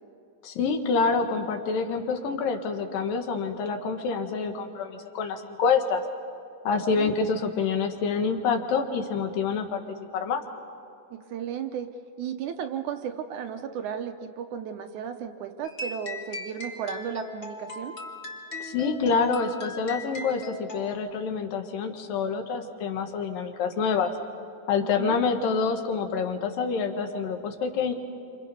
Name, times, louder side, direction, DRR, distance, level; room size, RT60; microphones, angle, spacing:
voice 1, 0.4-6.0 6.6-9.8 10.1-10.4 18.6-24.1 24.7-27.9, left 5 dB, 80° left, 5 dB, 3.0 m, -27 dB
voice 2, 11.3-11.9 12.2-17.9 24.8-25.2, right 8 dB, 70° right, 6 dB, 2.1 m, -34 dB
sound 1, 15.6-20.9, left 2 dB, 35° left, 1.1 m, -39 dB
28.0 x 27.0 x 5.4 m, 2.4 s
omnidirectional pair, 4.0 m